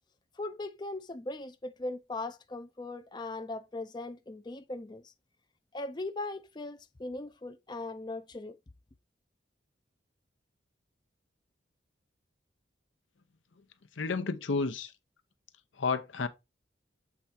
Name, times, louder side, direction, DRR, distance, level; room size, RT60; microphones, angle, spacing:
voice 1, 0.4-5.1 5.7-8.6, left 2 dB, 25° left, 0.4 m, -39 dB
voice 2, 14.0-14.9 15.8-16.3, left 4 dB, 85° left, 0.7 m, -31 dB
7.7 x 3.5 x 4.2 m
head